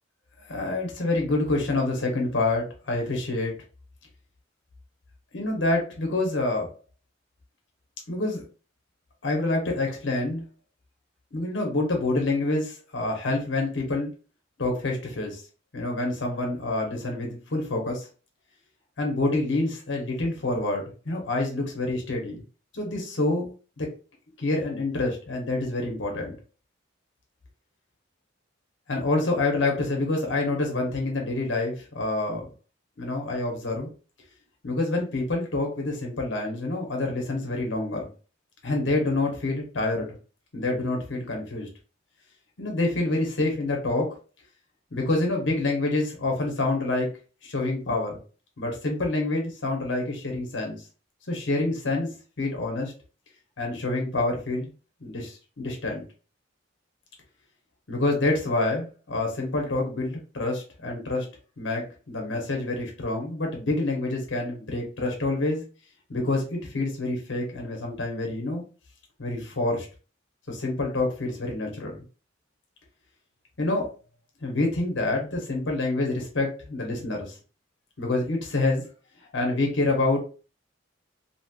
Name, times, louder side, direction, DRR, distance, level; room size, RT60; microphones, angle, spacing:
voice 1, 0.5-3.5 5.3-6.7 8.1-8.4 9.2-10.4 11.3-14.1 14.6-15.4 15.7-18.1 19.0-22.4 22.7-23.9 24.4-26.4 28.9-32.4 33.0-33.9 34.6-38.1 38.6-40.1 40.5-41.7 42.6-44.1 44.9-47.1 47.4-48.2 48.6-50.8 51.3-52.9 53.6-54.7 55.0-56.0 57.9-61.3 61.6-65.6 66.1-68.6 69.2-69.9 70.5-72.0 73.6-73.9 74.4-77.3 78.0-78.9 79.3-80.2, left 2 dB, 65° left, 1 dB, 0.9 m, -27 dB
2.9 x 2.9 x 2.2 m, 0.35 s
head